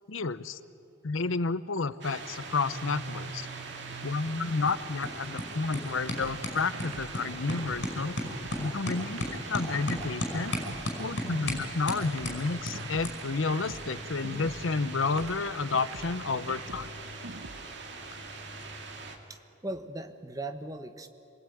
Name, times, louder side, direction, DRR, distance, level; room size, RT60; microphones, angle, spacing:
voice 1, 0.1-0.6 1.0-3.5 4.0-8.2 8.6-10.5 11.0-16.9, left 4 dB, 75° left, 15 dB, 0.8 m, -31 dB
sound 1, 2.0-19.2, right 3 dB, 55° right, 2.4 m, -42 dB
sound 2, 3.3-19.2, left 1 dB, 55° left, 5.4 m, -39 dB
sound 3, 6.2-8.7 9.2-11.7 12.2-14.7 15.2-17.7, right 3 dB, 85° right, 1.1 m, -44 dB
voice 2, 19.3-21.1, right 2 dB, 15° right, 7 dB, 1.2 m, -38 dB
27.0 x 20.5 x 9.3 m, 2.7 s
head